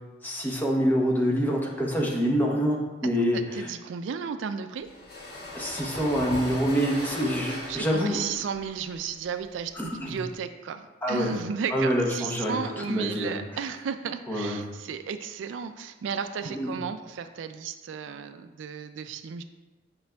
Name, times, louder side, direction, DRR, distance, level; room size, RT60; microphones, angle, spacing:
voice 1, 0.2-3.7 5.5-8.2 9.8-10.2 11.0-11.3 11.7-13.3 14.3-14.6 16.5-16.7, equal, 10° left, -2 dB, 0.9 m, -26 dB
voice 2, 3.3-4.9 6.9-19.4, right 6 dB, 75° right, 9 dB, 0.3 m, -34 dB
sound 1, 4.8-10.3, left 1 dB, 55° left, 1.7 m, -38 dB
8.8 x 5.1 x 2.3 m, 1.2 s
head